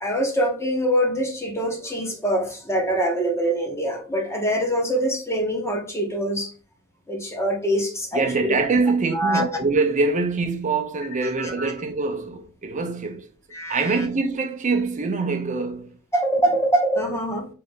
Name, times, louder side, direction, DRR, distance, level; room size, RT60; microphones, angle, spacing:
voice 1, 0.0-6.5 7.1-8.5 9.1-9.4 11.4-11.5 13.5-14.0 16.1-17.5, right 1 dB, 15° left, 0.9 m, -24 dB
voice 2, 8.1-13.3 13.7-16.0, right 3 dB, 35° right, 0.5 m, -24 dB
3.8 x 3.2 x 3.5 m
head